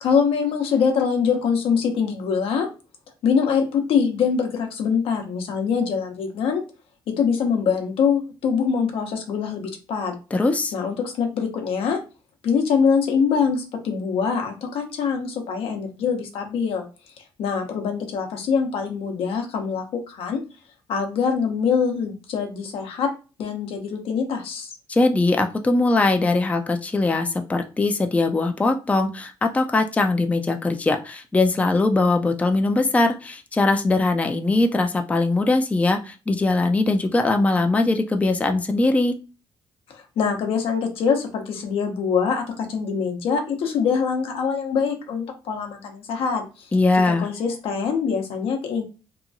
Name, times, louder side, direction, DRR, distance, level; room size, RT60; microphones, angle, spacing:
voice 1, 0.0-2.7 3.2-6.6 7.1-10.2 10.7-12.0 12.4-16.8 17.4-20.4 20.9-23.1 23.4-24.7 39.9-46.7 47.1-48.8, left 6 dB, 75° left, 3 dB, 0.7 m, -24 dB
voice 2, 10.3-10.7 24.9-39.2 46.7-47.3, left 2 dB, 15° left, 5 dB, 0.4 m, -21 dB
2.8 x 2.2 x 2.6 m, 0.32 s
cardioid pair, 80°, 10 cm